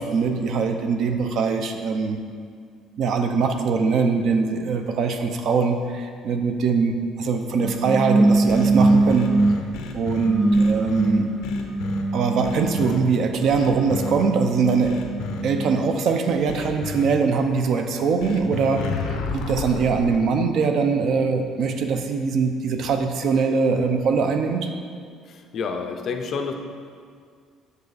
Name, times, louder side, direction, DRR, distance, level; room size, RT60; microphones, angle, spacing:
voice 1, 0.0-2.2 3.0-9.3 9.9-11.3 12.1-15.0 15.4-24.7, right 5 dB, 50° right, 6 dB, 0.5 m, -22 dB
sound 1, 7.6-9.6 10.2-12.9 13.5-15.8, right 2 dB, 20° right, 1.0 m, -22 dB
sound 2, 8.5-11.1 11.4-12.0 12.4-13.0 13.5-14.1 14.8-15.4 16.5-17.0 18.2-20.2, left 5 dB, 90° left, 0.7 m, -32 dB
voice 2, 25.3-26.5, left 5 dB, 40° left, 5 dB, 0.5 m, -29 dB
6.6 x 5.4 x 4.0 m, 2.1 s
cardioid pair, 170°, 0 cm